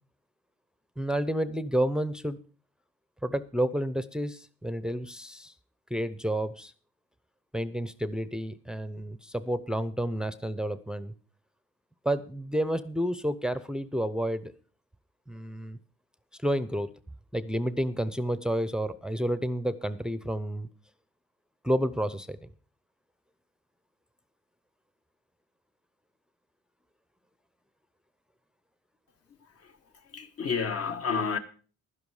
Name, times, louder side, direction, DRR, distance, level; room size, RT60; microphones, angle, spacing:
voice 1, 1.0-2.4 3.2-5.5 5.9-6.7 7.5-11.1 12.0-14.5 15.3-15.8 16.4-16.9 17.3-20.7 21.6-22.5, equal, 5° right, 0.6 m, -30 dB
voice 2, 29.4-31.4, left 5 dB, 50° left, 1.5 m, -31 dB
11.5 x 10.5 x 4.9 m
cardioid pair, 90°, 30 cm